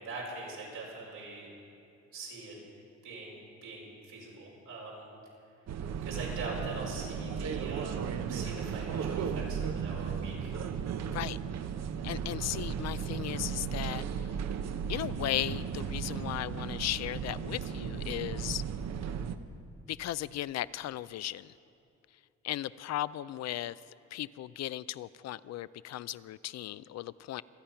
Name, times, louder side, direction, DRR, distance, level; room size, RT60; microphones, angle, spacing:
voice 1, 0.0-1.5 2.1-2.6 3.0-5.1 6.0-10.6, right 3 dB, 90° right, -4 dB, 4.9 m, -42 dB
sound 1, 5.7-19.4, right 7 dB, 60° right, 0.8 m, -35 dB
voice 2, 11.1-11.4 12.0-14.0 14.9-18.6 19.9-21.5 22.4-23.8 24.1-27.4, left 13 dB, 60° left, 18 dB, 0.4 m, -36 dB
26.0 x 8.8 x 5.7 m, 2.6 s
cardioid pair, 90°, 30 cm